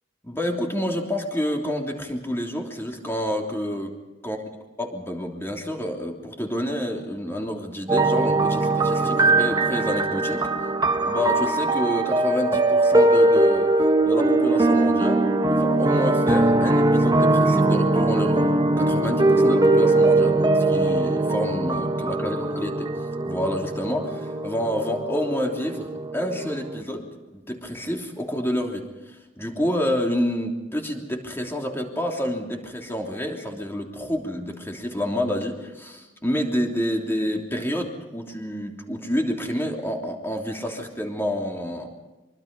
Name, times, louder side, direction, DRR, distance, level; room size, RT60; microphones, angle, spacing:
voice 1, 0.2-3.9 4.2-4.4 4.8-10.5 11.0-13.7 14.0-18.5 18.8-41.9, equal, 15° left, 1 dB, 3.2 m, -28 dB
sound 1, 7.9-26.8, right 2 dB, 20° right, 1.2 m, -21 dB
25.0 x 24.0 x 5.4 m, 1.1 s
head